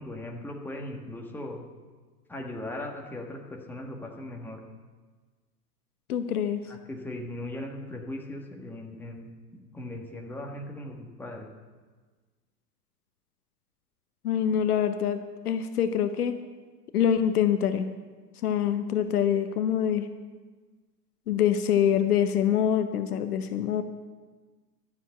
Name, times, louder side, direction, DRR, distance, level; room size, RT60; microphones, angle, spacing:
voice 1, 0.0-1.6 2.3-4.6 6.7-9.3 9.7-11.5, left 1 dB, 5° left, 0 dB, 1.6 m, -38 dB
voice 2, 6.1-6.6 14.2-16.3 16.9-17.9 18.4-20.1 21.3-23.8, left 9 dB, 65° left, 10 dB, 0.9 m, -25 dB
12.5 x 7.3 x 7.8 m, 1.4 s
figure-of-eight pair, 100°, 49 cm